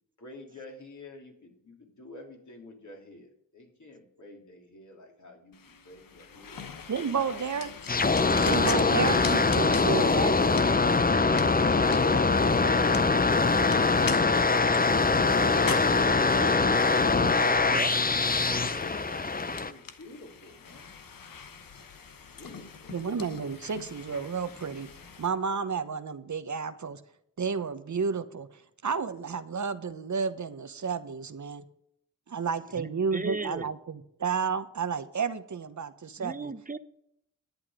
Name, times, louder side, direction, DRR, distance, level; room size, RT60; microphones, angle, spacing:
voice 1, 0.2-6.7 7.1-7.4 18.3-20.9 22.4-22.9, left 1 dB, 55° left, 3.2 m, -46 dB
sound 1, 5.5-25.3, left 6 dB, 75° left, 1.1 m, -43 dB
voice 2, 6.9-7.7 8.4-10.3 22.9-24.9 25.2-27.0 27.4-31.6 32.3-36.5, right 5 dB, 55° right, 1.0 m, -31 dB
sound 2, 7.9-19.7, left 3 dB, 25° left, 0.7 m, -23 dB
voice 3, 32.7-33.7 36.2-36.8, right 3 dB, 25° right, 0.8 m, -35 dB
11.0 x 8.8 x 5.0 m
cardioid pair, 50°, 34 cm